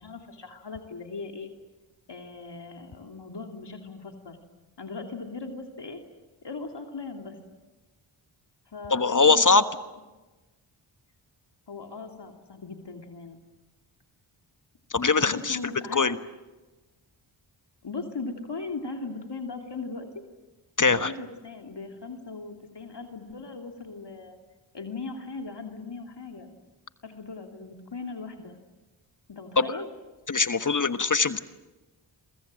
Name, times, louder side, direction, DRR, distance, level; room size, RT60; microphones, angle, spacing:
voice 1, 0.0-1.5 2.1-4.4 4.8-6.0 6.4-7.4 8.7-9.5 11.7-13.4 15.3-16.1 17.8-20.1 20.8-24.4 24.7-26.5 27.0-28.6 29.3-29.9, left 4 dB, 55° left, 4 dB, 3.1 m, -38 dB
voice 2, 8.9-9.6 14.9-15.6 15.9-16.2 20.8-21.1 29.6-29.7 30.3-31.4, left 4 dB, 40° left, 11 dB, 1.3 m, -21 dB
28.5 x 23.5 x 7.7 m, 1.2 s
cardioid pair, 45°, 49 cm